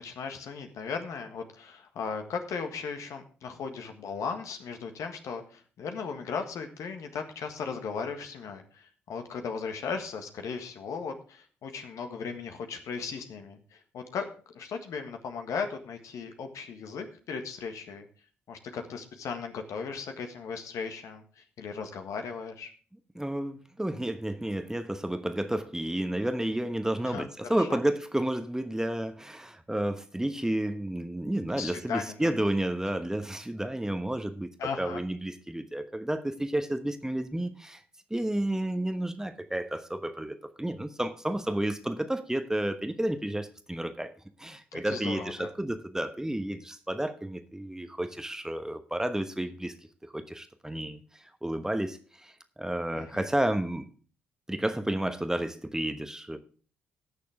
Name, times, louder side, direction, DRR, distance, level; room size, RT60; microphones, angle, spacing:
voice 1, 0.0-14.3 14.5-18.1 18.5-22.7 27.0-27.8 31.5-32.3 34.6-35.0 44.7-45.5 52.9-53.3, left 5 dB, 60° left, 1.6 m, -37 dB
voice 2, 23.1-37.8 38.1-44.1 44.4-49.7 50.0-51.0 51.4-53.9 54.5-56.4, right 1 dB, 10° right, 1.2 m, -31 dB
18.0 x 6.8 x 3.5 m
figure-of-eight pair, 40°, 6 cm